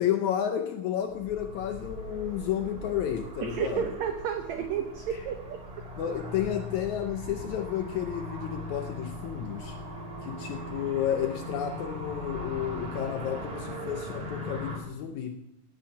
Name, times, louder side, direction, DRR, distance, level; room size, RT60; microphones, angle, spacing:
voice 1, 0.0-4.0 4.6-4.7 6.0-9.8 10.2-15.4, left 10 dB, 75° left, 6 dB, 1.8 m, -31 dB
sound 1, 1.1-14.8, left 1 dB, 30° right, 2.1 m, -39 dB
voice 2, 3.4-5.9, right 8 dB, 70° right, 6 dB, 1.8 m, -32 dB
16.5 x 5.7 x 9.2 m, 0.88 s
omnidirectional pair, 4.2 m